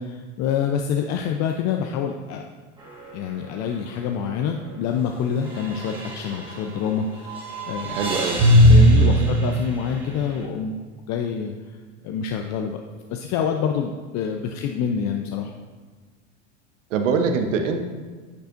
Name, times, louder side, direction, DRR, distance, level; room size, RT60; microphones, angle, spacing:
voice 1, 0.0-2.4 3.1-8.0 8.7-10.8 11.1-11.8 12.0-12.8 13.1-15.5, left 7 dB, 50° left, 3 dB, 0.6 m, -26 dB
sound 1, 2.8-3.2 3.5-3.6 5.4-6.9 7.2-10.3, equal, 15° right, 2.1 m, -19 dB
voice 2, 7.9-8.4 8.9-9.3 16.9-17.8, right 5 dB, 80° right, 6 dB, 1.0 m, -24 dB
10.0 x 6.7 x 2.6 m, 1.4 s
hypercardioid pair, 95°, 37 cm